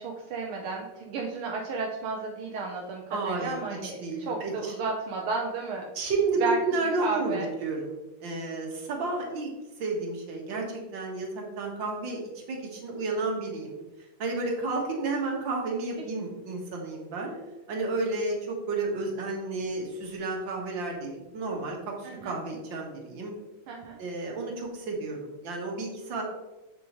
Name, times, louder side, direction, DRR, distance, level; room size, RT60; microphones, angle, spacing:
voice 1, 0.0-5.9 6.4-6.6 7.0-7.5 22.0-22.3 23.7-24.0, right 4 dB, 85° right, 0 dB, 1.7 m, -33 dB
voice 2, 3.1-4.7 5.9-9.5 9.8-17.3 17.7-23.3 24.0-26.2, right 3 dB, 65° right, 0 dB, 2.2 m, -32 dB
7.6 x 7.0 x 3.1 m, 1.1 s
omnidirectional pair, 2.3 m